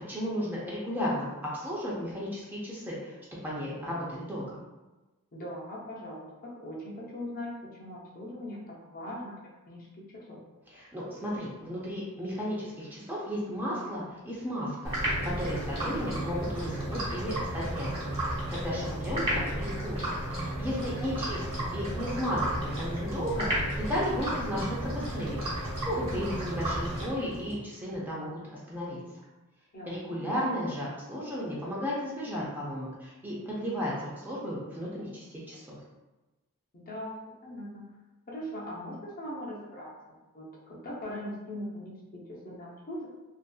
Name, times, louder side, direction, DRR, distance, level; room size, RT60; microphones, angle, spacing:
voice 1, 0.1-1.3 1.5-3.1 3.4-4.6 10.7-29.0 29.9-35.8, equal, 10° right, -6 dB, 0.5 m, -34 dB
voice 2, 5.3-7.5 7.8-9.3 9.7-9.9 10.1-10.4 18.7-19.1 20.8-21.3 29.7-30.2 36.7-37.1 37.4-37.8 38.3-39.9 40.3-43.1, left 1 dB, 40° left, -5 dB, 0.6 m, -40 dB
sound 1, 14.8-27.5, right 1 dB, 25° right, 1.0 m, -33 dB
2.5 x 2.5 x 2.3 m, 1.1 s
head